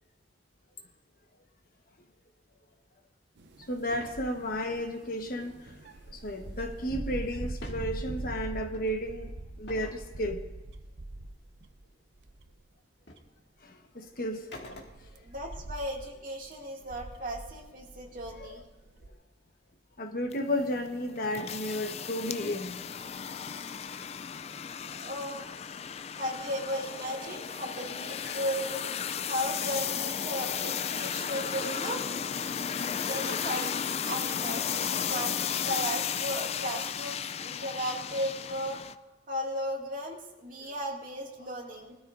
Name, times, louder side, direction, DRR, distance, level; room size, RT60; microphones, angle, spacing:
sound 1, 3.4-11.9 12.2-12.7 13.2-13.3 14.1-19.1, right 2 dB, 70° right, 0.7 m, -42 dB
voice 1, 3.7-5.7 6.1-9.3 9.6-10.4 13.6-14.4 18.3-18.6 20.0-23.0 24.0-24.1 28.2-28.4, left 1 dB, 50° left, 1.3 m, -33 dB
sound 2, 3.9-4.2 7.4-7.9 8.7-8.9 9.7-10.0 12.3-12.4 13.1-13.3 14.5-15.2, left 1 dB, 65° left, 2.0 m, -45 dB
voice 2, 15.1-18.6 24.9-25.7 26.2-28.8 29.3-32.3 33.1-33.8 34.1-35.4 35.6-38.8 39.3-42.0, equal, 50° right, 2.2 m, -36 dB
sound 3, 20.3-38.9, left 8 dB, 35° left, 0.3 m, -34 dB
21.0 x 13.0 x 2.6 m
head